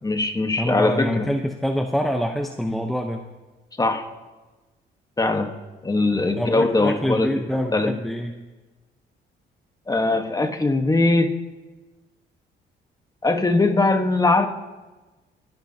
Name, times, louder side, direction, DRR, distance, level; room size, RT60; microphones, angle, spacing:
voice 1, 0.0-1.3 3.8-4.0 5.2-5.5 5.8-7.3 7.7-7.9 9.9-11.3 13.2-14.5, left 2 dB, 20° left, 6 dB, 1.3 m, -21 dB
voice 2, 0.6-3.2 6.4-8.4, equal, ahead, 3 dB, 0.8 m, -25 dB
23.0 x 10.5 x 2.8 m, 1.2 s
cardioid pair, 90°, 20 cm